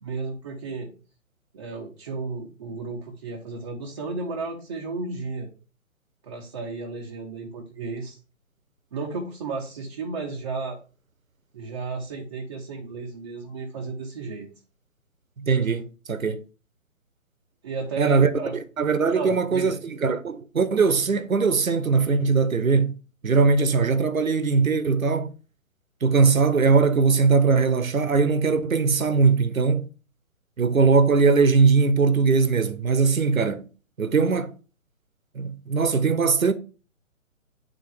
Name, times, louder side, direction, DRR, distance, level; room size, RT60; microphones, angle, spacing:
voice 1, 0.0-0.9 1.5-5.5 6.2-8.2 8.9-10.8 11.5-14.5 17.6-18.6 19.1-19.8, right 4 dB, 25° right, 0.7 m, -33 dB
voice 2, 15.4-16.4 18.0-23.0 23.2-25.3 26.0-29.9 30.6-33.6 34.0-34.5 35.4-36.5, right 4 dB, 85° right, 0.9 m, -20 dB
8.6 x 3.7 x 3.5 m
figure-of-eight pair, 140°, 40 cm